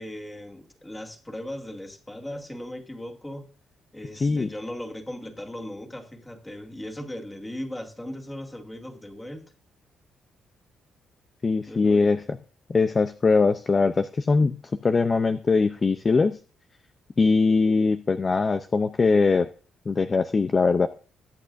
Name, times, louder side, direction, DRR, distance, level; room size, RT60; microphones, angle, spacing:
voice 1, 0.0-3.5 3.9-9.5 11.7-12.2, left 1 dB, 10° left, 2.3 m, -38 dB
voice 2, 11.4-12.2 12.7-14.5 14.8-16.4 17.2-19.5 19.9-20.9, left 4 dB, 30° left, 0.6 m, -21 dB
21.5 x 8.7 x 2.6 m
cardioid pair, 120°, 0 cm